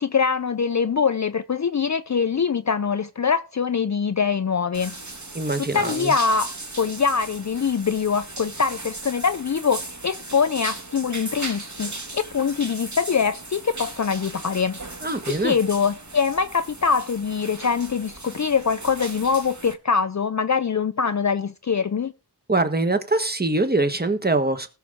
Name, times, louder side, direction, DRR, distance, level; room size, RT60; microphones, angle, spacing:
voice 1, 0.0-4.9 5.7-14.8 15.4-22.1, left 6 dB, 45° left, 0.5 m, -23 dB
sound 1, 4.7-19.7, right 2 dB, 45° right, 2.0 m, -37 dB
voice 2, 5.3-6.1 15.0-15.6 22.5-24.7, right 2 dB, 25° right, 1.4 m, -23 dB
19.0 x 6.6 x 3.6 m
wide cardioid pair, 70°, 40 cm